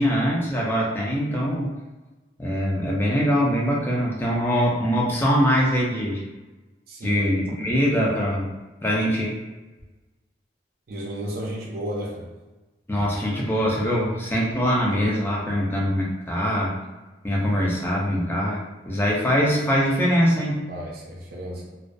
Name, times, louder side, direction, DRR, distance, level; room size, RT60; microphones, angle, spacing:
voice 1, 0.0-1.7 2.4-6.2 7.0-8.5 8.8-9.3 12.9-16.7 17.2-20.6, equal, 10° left, -4 dB, 0.4 m, -23 dB
voice 2, 6.9-7.3 8.0-8.1 10.9-12.3 20.7-21.7, equal, 55° right, -3 dB, 0.4 m, -33 dB
2.2 x 2.2 x 2.5 m, 1.2 s
head